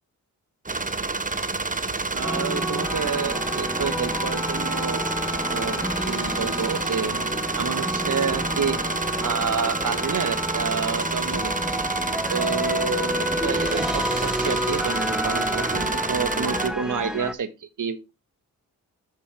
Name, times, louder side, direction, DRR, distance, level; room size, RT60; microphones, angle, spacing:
sound 1, 0.7-16.7, right 3 dB, 20° right, 1.0 m, -28 dB
voice 1, 2.1-5.0 5.5-8.8 9.2-11.6 12.3-18.1, right 6 dB, 60° right, 11 dB, 1.4 m, -29 dB
sound 2, 2.2-17.3, equal, ahead, 0.8 m, -30 dB
Wind instrument woodwind instrument, 2.8-11.0, left 6 dB, 45° left, 1.4 m, -40 dB
8.2 x 7.9 x 3.4 m, 0.25 s
cardioid pair, 55°, 35 cm